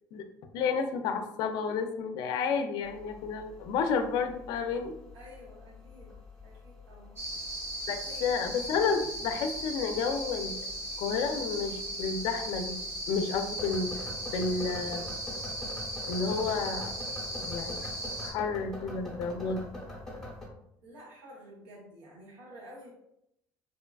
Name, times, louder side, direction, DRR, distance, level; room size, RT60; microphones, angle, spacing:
voice 1, 0.5-4.9 7.9-10.7 11.0-12.8 13.1-13.9 14.3-15.0 16.1-16.9 17.3-17.9 18.2-19.6, left 5 dB, 70° left, 6 dB, 0.4 m, -31 dB
sound 1, 2.8-20.5, left 2 dB, 5° left, 0.7 m, -45 dB
voice 2, 5.1-7.2 8.0-8.3 20.8-22.9, equal, 85° right, -5 dB, 0.7 m, -50 dB
sound 2, 7.2-18.3, right 1 dB, 35° right, 0.8 m, -37 dB
2.8 x 2.3 x 2.2 m, 0.79 s
cardioid pair, 125°, 7 cm